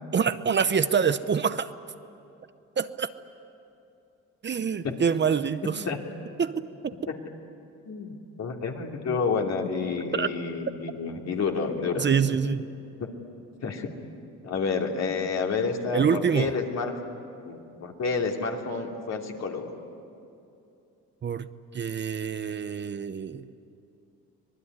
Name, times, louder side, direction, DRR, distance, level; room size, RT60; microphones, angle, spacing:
voice 1, 0.1-1.7 2.8-3.1 4.4-5.8 6.4-6.9 10.1-10.3 11.9-12.7 15.9-16.5 21.2-21.5 21.7-23.5, right 6 dB, 35° right, 12 dB, 0.8 m, -26 dB
voice 2, 7.8-12.0 13.0-13.1 13.6-13.9 14.4-16.9 17.4-19.7, left 4 dB, 60° left, 1 dB, 3.0 m, -29 dB
25.0 x 19.5 x 9.7 m, 2.8 s
cardioid pair, 90°, 30 cm